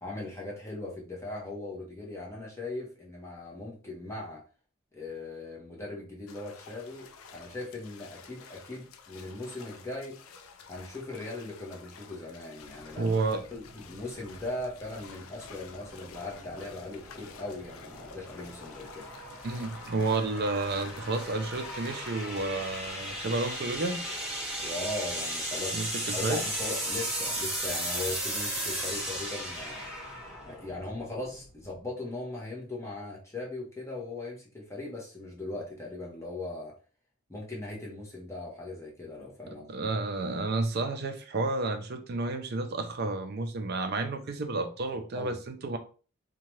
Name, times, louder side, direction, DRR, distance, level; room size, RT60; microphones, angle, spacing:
voice 1, 0.0-4.4 4.9-10.2 10.7-19.0 24.6-29.9 30.4-36.7 37.3-39.7 45.1-45.4, left 2 dB, 15° left, 0.7 m, -39 dB
sound 1, 6.3-24.7, left 5 dB, 70° left, 0.4 m, -50 dB
sound 2, 12.6-31.8, right 1 dB, 10° right, 1.2 m, -37 dB
voice 2, 13.0-13.4 19.4-24.0 25.7-26.4 39.7-45.8, right 3 dB, 45° right, 0.4 m, -31 dB
2.7 x 2.2 x 3.1 m
head